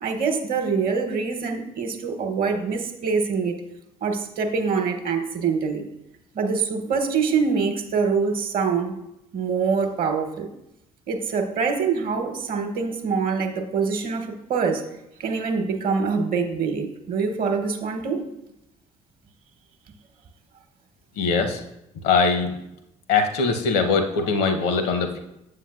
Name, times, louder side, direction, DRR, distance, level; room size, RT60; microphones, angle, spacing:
voice 1, 0.0-3.6 4.0-5.9 6.3-8.9 9.3-10.5 11.1-14.9 15.2-18.2, right 5 dB, 55° right, 6 dB, 0.9 m, -25 dB
voice 2, 21.2-21.6 22.0-22.6 23.1-25.2, left 4 dB, 65° left, 7 dB, 0.8 m, -21 dB
7.2 x 6.6 x 2.4 m, 0.85 s
hypercardioid pair, 45°, 18 cm